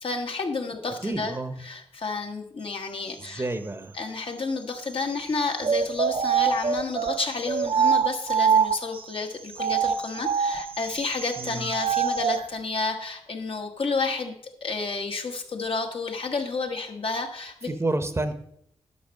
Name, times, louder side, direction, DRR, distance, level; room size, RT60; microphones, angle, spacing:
voice 1, 0.0-3.5 3.9-14.3 14.6-17.7, left 4 dB, 60° left, 3 dB, 1.4 m, -31 dB
voice 2, 1.0-1.6 3.2-4.0 11.4-11.7 17.7-18.3, right 2 dB, 25° right, 9 dB, 0.8 m, -29 dB
sound 1, 5.6-9.0 9.5-12.4, right 7 dB, 60° right, 0.7 m, -24 dB
11.0 x 4.2 x 6.5 m, 0.71 s
cardioid pair, 65°, 11 cm